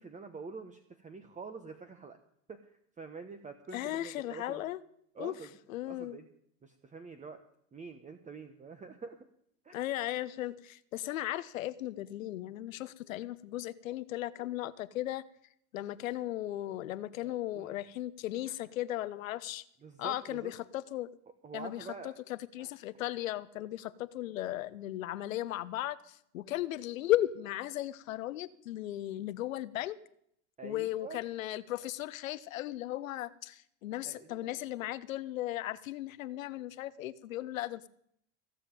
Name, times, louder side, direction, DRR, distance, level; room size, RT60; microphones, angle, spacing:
voice 1, 0.0-2.2 2.5-4.6 5.1-5.6 5.9-6.3 6.6-7.4 7.7-9.2 9.6-9.8 17.2-17.7 18.5-18.6 19.8-20.5 21.4-22.1 22.6-22.7 30.6-31.2 34.0-34.6, right 4 dB, 20° right, 8 dB, 1.1 m, -46 dB
voice 2, 3.7-4.8 5.2-5.3 5.7-6.2 9.7-15.2 15.7-19.6 20.0-21.1 21.5-30.0 30.6-37.9, left 14 dB, 85° left, 17 dB, 0.9 m, -36 dB
16.5 x 7.4 x 9.0 m, 0.70 s
supercardioid pair, 105°, 39 cm